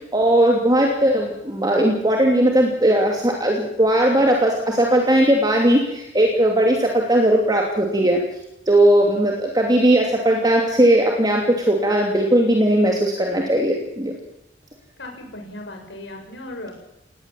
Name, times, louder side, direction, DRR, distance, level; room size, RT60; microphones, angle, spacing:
voice 1, 0.1-8.2 8.7-14.1, right 1 dB, 20° right, 0 dB, 2.8 m, -18 dB
voice 2, 15.0-16.7, left 1 dB, 85° left, 2 dB, 6.5 m, -36 dB
19.5 x 18.0 x 7.7 m, 0.85 s
head